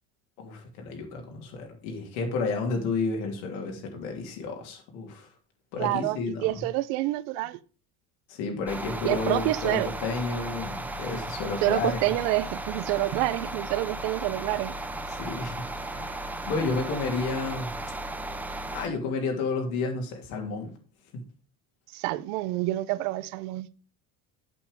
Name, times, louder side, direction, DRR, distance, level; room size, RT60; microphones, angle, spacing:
voice 1, 0.4-5.3 5.7-6.6 8.3-12.0 15.1-15.6 15.9-17.7 18.7-20.7, left 4 dB, 80° left, 3.1 m, -31 dB
voice 2, 5.8-7.6 9.0-9.9 11.6-14.7 21.9-23.8, right 17 dB, 80° right, 0.7 m, -28 dB
sound 1, 8.7-18.9, right 2 dB, 5° right, 0.5 m, -35 dB
8.4 x 6.9 x 5.2 m
cardioid pair, 170°, 39 cm